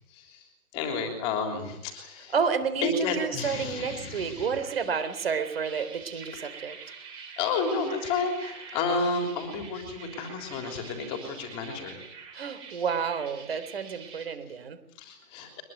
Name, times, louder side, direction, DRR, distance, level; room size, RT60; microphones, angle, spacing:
voice 1, 0.7-2.3 2.8-4.5 7.4-12.0 15.0-15.6, left 4 dB, 15° left, 4 dB, 3.3 m, -31 dB
voice 2, 2.3-6.8 12.3-14.8, right 6 dB, 40° right, 13 dB, 3.8 m, -30 dB
sound 1, 3.2-14.3, right 5 dB, 10° right, 3.5 m, -46 dB
23.5 x 21.5 x 9.4 m, 0.77 s
hypercardioid pair, 170°, 45 cm